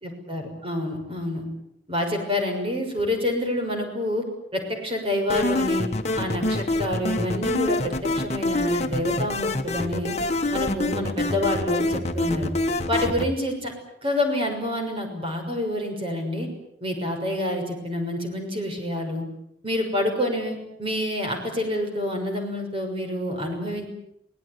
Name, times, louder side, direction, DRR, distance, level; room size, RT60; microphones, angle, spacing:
voice 1, 0.0-1.4 1.9-4.2 4.5-5.9 6.1-10.1 10.5-12.5 12.9-13.7 14.0-16.5 16.8-19.2 19.6-23.9, left 1 dB, 30° right, 4 dB, 6.3 m, -27 dB
sound 1, 5.3-13.3, left 2 dB, 40° left, 1.6 m, -26 dB
24.5 x 18.5 x 9.7 m, 0.79 s
head